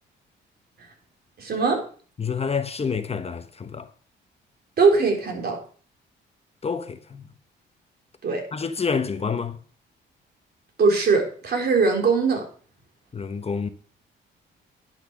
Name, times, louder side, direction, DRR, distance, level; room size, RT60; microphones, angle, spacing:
voice 1, 1.4-1.8 4.8-5.6 8.2-8.4 10.8-12.5, right 4 dB, 55° right, 3.9 m, -21 dB
voice 2, 2.2-3.9 6.6-7.2 8.5-9.6 13.1-13.7, left 5 dB, 30° left, 0.9 m, -28 dB
10.5 x 6.1 x 6.3 m
cardioid pair, 90°, 20 cm